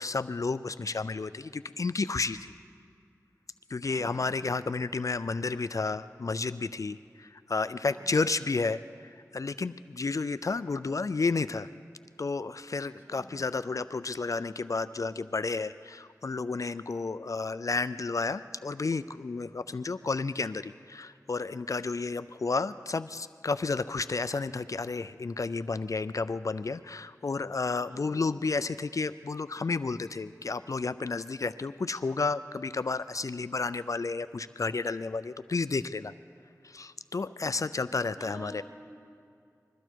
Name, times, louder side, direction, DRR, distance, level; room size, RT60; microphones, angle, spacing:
voice 1, 0.0-2.5 3.7-11.7 12.2-36.1 36.6-38.6, left 4 dB, 60° left, 14 dB, 0.3 m, -31 dB
voice 2, 3.9-4.4 7.8-8.1 13.1-13.3 27.9-28.3 37.6-37.7 38.1-38.6, equal, 30° right, -6 dB, 5.2 m, -48 dB
21.5 x 14.5 x 4.6 m, 2.3 s
wide cardioid pair, 55°, 6 cm